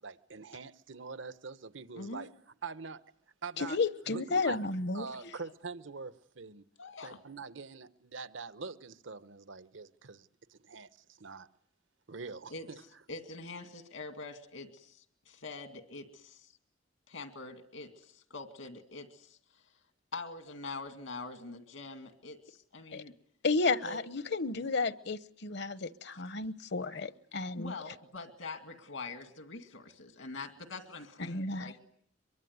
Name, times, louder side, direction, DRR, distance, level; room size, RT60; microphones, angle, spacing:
voice 1, 0.0-2.3 2.6-3.0 3.4-3.8 4.1-4.6 4.9-6.6 7.0-11.5 12.1-12.8, right 4 dB, 70° right, 1.1 m, -44 dB
voice 2, 1.9-2.3 6.8-7.2 12.5-12.7 13.1-16.6 17.1-19.7 20.1-23.1 23.8-24.0 27.6-31.7, left 3 dB, 80° left, 2.3 m, -44 dB
voice 3, 3.6-5.1 22.9-23.0 23.4-27.7 31.3-31.8, left 3 dB, 60° left, 1.0 m, -32 dB
24.0 x 23.0 x 9.5 m
head